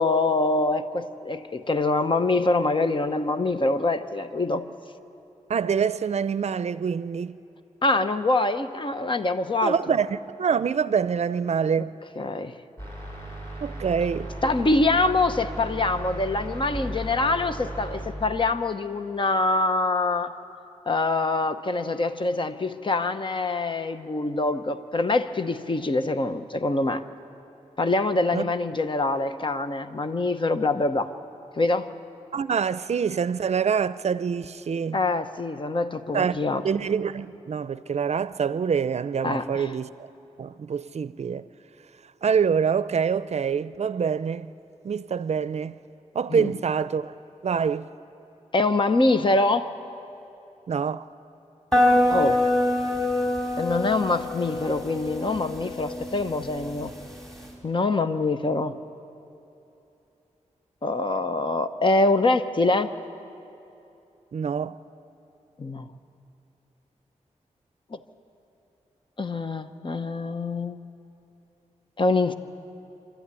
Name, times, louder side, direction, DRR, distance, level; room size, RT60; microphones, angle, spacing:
voice 1, 0.0-4.7 7.8-9.7 12.2-12.5 14.4-20.3 20.9-27.0 27.8-31.1 31.6-31.9 34.9-36.6 39.2-39.7 46.3-46.5 48.5-49.7 52.1-52.4 53.6-56.9 57.6-58.8 60.8-62.9 65.6-65.9 67.9-68.0 69.2-70.8 72.0-72.3, left 2 dB, 40° left, 0.9 m, -24 dB
voice 2, 5.5-7.4 9.6-12.0 13.6-14.3 28.3-28.5 32.3-35.0 36.1-36.4 36.6-39.9 40.4-41.5 42.2-44.5 44.8-45.7 46.1-47.1 47.4-47.9 50.7-51.1 64.3-64.8, right 6 dB, 60° right, 0.5 m, -25 dB
sound 1, 12.8-18.1, right 1 dB, 20° left, 5.9 m, -36 dB
sound 2, 51.7-57.5, left 1 dB, 5° left, 4.1 m, -25 dB
26.0 x 13.0 x 9.7 m
wide cardioid pair, 80°, 13 cm